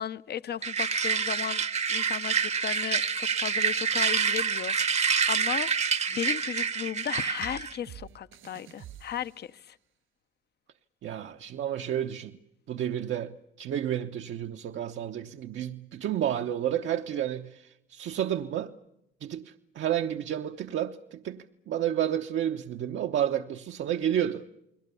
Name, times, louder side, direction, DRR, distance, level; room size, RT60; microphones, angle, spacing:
voice 1, 0.0-1.6 1.9-9.8, left 9 dB, 55° left, 0.8 m, -35 dB
sound 1, 0.6-7.8, right 6 dB, 35° right, 0.9 m, -27 dB
sound 2, 7.4-9.7, right 11 dB, 90° right, 4.7 m, -48 dB
voice 2, 11.0-12.4 12.7-18.7 19.2-24.5, right 10 dB, 70° right, 1.0 m, -31 dB
29.5 x 21.5 x 7.0 m
cardioid pair, 90°, 20 cm